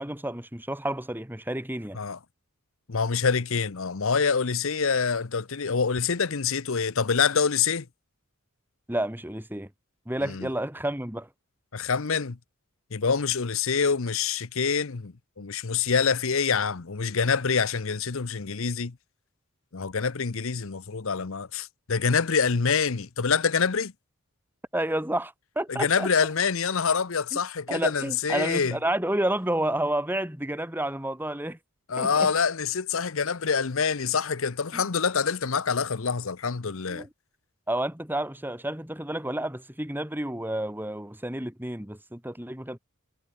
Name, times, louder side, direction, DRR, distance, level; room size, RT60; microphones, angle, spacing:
voice 1, 0.0-2.0 8.9-9.7 10.1-11.3 24.7-26.1 27.3-27.4 27.7-31.6 32.0-32.3 34.7-34.8 36.9-37.1 37.7-42.8, right 1 dB, 10° right, 2.1 m, -30 dB
voice 2, 2.9-7.9 10.3-10.5 11.7-12.4 12.9-18.9 19.7-23.9 25.7-28.7 31.9-37.0, left 5 dB, 60° left, 0.8 m, -26 dB
head